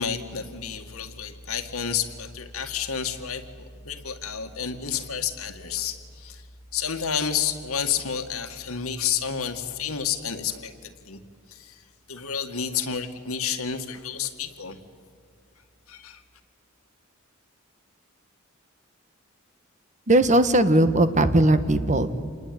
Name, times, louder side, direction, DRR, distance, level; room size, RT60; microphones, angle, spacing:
voice 1, 0.0-3.5 3.8-6.4 6.7-11.2 11.5-11.8 12.1-14.8 15.9-16.2, left 7 dB, 80° left, 6 dB, 2.1 m, -30 dB
voice 2, 20.1-22.1, right 1 dB, 35° right, 11 dB, 1.4 m, -19 dB
27.5 x 20.5 x 9.4 m, 2.1 s
head